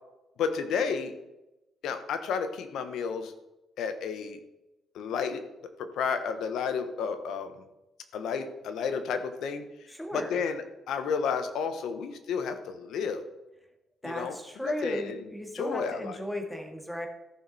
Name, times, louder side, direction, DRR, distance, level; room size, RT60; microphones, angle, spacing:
voice 1, 0.4-1.1 1.8-3.3 3.8-4.4 4.9-5.4 5.8-7.5 8.1-9.6 10.1-13.2 14.0-14.4 14.6-15.2 15.5-16.2, left 6 dB, 80° left, 9 dB, 1.2 m, -31 dB
voice 2, 9.9-10.4 14.0-17.1, equal, 5° left, 3 dB, 2.1 m, -36 dB
14.0 x 6.3 x 4.2 m, 0.96 s
cardioid pair, 90°, 0 cm